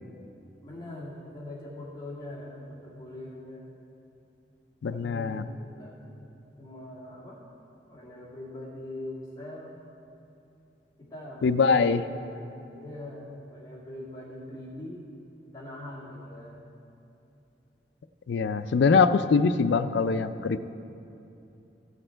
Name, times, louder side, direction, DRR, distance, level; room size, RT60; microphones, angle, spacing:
voice 1, 0.6-3.7 4.9-6.3 6.6-7.5 7.9-9.8 11.0-11.9 12.6-15.0 15.5-16.6, left 1 dB, 20° left, -6 dB, 1.9 m, -42 dB
voice 2, 4.8-5.4 11.4-12.0 18.3-20.7, left 5 dB, 75° left, 12 dB, 0.4 m, -23 dB
14.5 x 6.6 x 4.5 m, 2.8 s
head